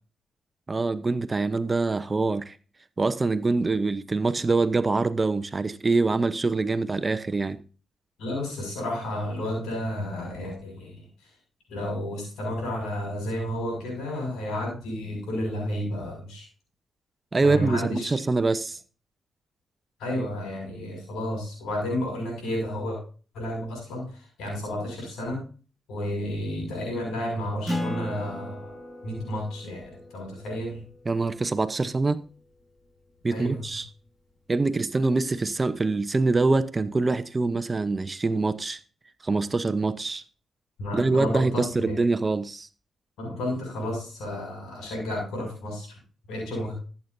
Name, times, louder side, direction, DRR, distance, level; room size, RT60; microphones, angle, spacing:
voice 1, 0.7-2.5 3.0-7.6 17.3-18.8 31.1-32.2 33.2-33.9 34.5-38.8 39.2-40.2 40.9-42.7, right 3 dB, 35° right, 0.9 m, -24 dB
voice 2, 8.2-11.0 11.7-16.5 17.4-18.1 20.0-23.0 23.3-25.4 25.9-28.7 29.0-30.9 33.3-33.6 40.8-42.0 43.2-46.0 46.3-46.7, left 1 dB, 90° left, 6.3 m, -31 dB
Acoustic guitar, 27.7-32.6, left 1 dB, 5° left, 5.0 m, -37 dB
14.0 x 8.3 x 2.7 m
supercardioid pair, 60°, 0 cm